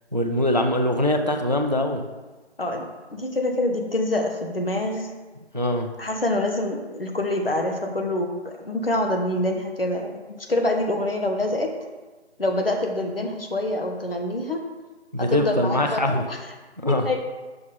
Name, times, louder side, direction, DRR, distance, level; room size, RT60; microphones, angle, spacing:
voice 1, 0.1-2.1 5.5-5.9 15.1-16.2 16.8-17.0, left 1 dB, 40° right, 5 dB, 0.4 m, -22 dB
voice 2, 2.6-5.1 6.0-11.7 12.4-14.6 15.2-16.4 16.9-17.2, left 1 dB, 55° left, 2 dB, 1.1 m, -26 dB
6.0 x 5.9 x 3.9 m, 1.2 s
figure-of-eight pair, 175°, 34 cm